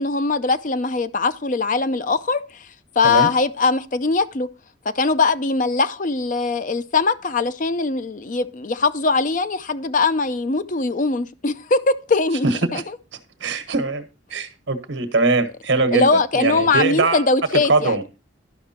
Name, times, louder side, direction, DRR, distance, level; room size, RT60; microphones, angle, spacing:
voice 1, 0.0-2.4 3.0-4.5 5.0-12.5 12.7-12.8 15.9-18.0, left 3 dB, 40° left, 0.5 m, -21 dB
voice 2, 12.4-12.8 13.4-17.2 17.7-18.0, right 3 dB, 75° right, 1.3 m, -21 dB
12.0 x 5.8 x 4.3 m
head